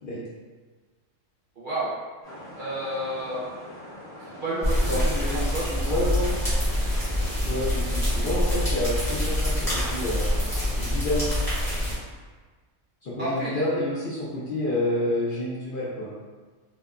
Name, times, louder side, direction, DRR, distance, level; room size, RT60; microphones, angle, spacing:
voice 1, 1.6-1.9 2.5-3.5 4.2-6.0 13.2-13.6, right 1 dB, 55° right, -9 dB, 0.6 m, -31 dB
sound 1, 2.2-10.7, left 1 dB, 25° left, 1.1 m, -42 dB
sound 2, 4.6-11.9, left 1 dB, ahead, 1.0 m, -25 dB
voice 2, 4.9-6.3 7.4-10.3 10.7-11.2 13.0-16.1, left 1 dB, 60° left, -8 dB, 0.6 m, -29 dB
2.7 x 2.1 x 2.4 m, 1.4 s
omnidirectional pair, 1.3 m